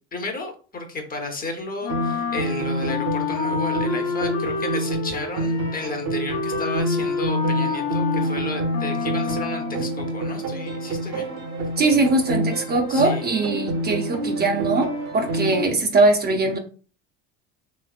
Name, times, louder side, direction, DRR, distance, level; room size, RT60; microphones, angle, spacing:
voice 1, 0.1-11.3 12.9-13.2, left 3 dB, 30° left, 4 dB, 0.9 m, -33 dB
Wind instrument woodwind instrument, 1.8-9.9, left 5 dB, 70° left, 0.9 m, -29 dB
sound 1, 1.9-15.6, right 1 dB, 55° right, 1.2 m, -27 dB
voice 2, 11.8-16.6, right 2 dB, 30° right, 3 dB, 0.7 m, -21 dB
3.2 x 3.0 x 2.4 m, 0.38 s
supercardioid pair, 85°, 31 cm